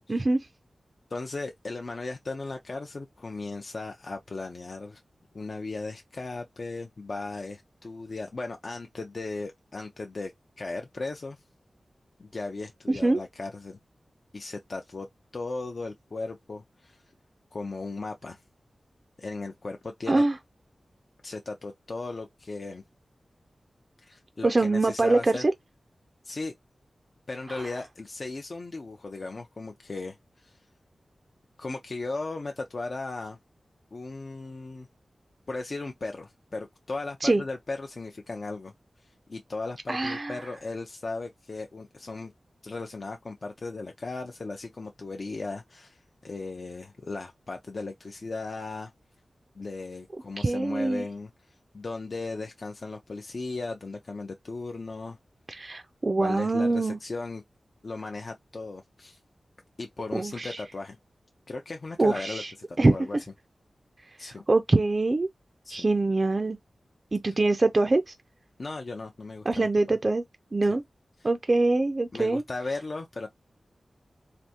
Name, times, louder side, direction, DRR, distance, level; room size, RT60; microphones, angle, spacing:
voice 1, 0.1-0.5 12.9-13.2 20.1-20.4 24.4-25.5 27.5-27.7 37.2-37.4 39.9-40.4 50.4-51.0 55.5-57.0 60.1-60.6 62.0-62.5 62.8-62.9 64.5-65.3 65.7-66.6 67.1-68.1 69.5-70.2 70.5-70.8 71.2-72.4, right 2 dB, 40° right, 0.3 m, -24 dB
voice 2, 1.1-5.0 5.3-11.4 12.2-13.8 14.3-15.1 15.3-17.0 17.5-18.4 19.2-20.2 21.2-22.8 24.0-25.4 26.2-26.5 27.3-30.6 31.6-33.4 33.9-34.9 35.5-38.7 39.0-42.3 42.6-48.9 49.5-55.2 56.2-57.4 57.8-59.2 59.8-61.0 61.5-63.2 64.2-64.4 65.6-65.9 68.6-69.7 72.1-73.3, left 3 dB, 50° left, 0.5 m, -37 dB
3.4 x 2.5 x 2.8 m
wide cardioid pair, 85°, 0 cm